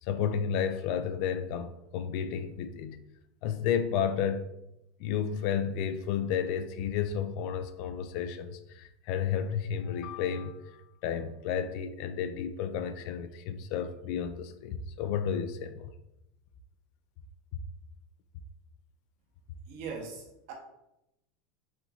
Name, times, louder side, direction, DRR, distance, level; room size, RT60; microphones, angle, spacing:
voice 1, 0.0-3.0 3.4-4.5 5.0-15.9, left 8 dB, 55° left, 0.3 m, -32 dB
voice 2, 19.7-20.5, right 5 dB, 65° right, 1.3 m, -40 dB
5.6 x 3.0 x 2.7 m
supercardioid pair, 145°, 0 cm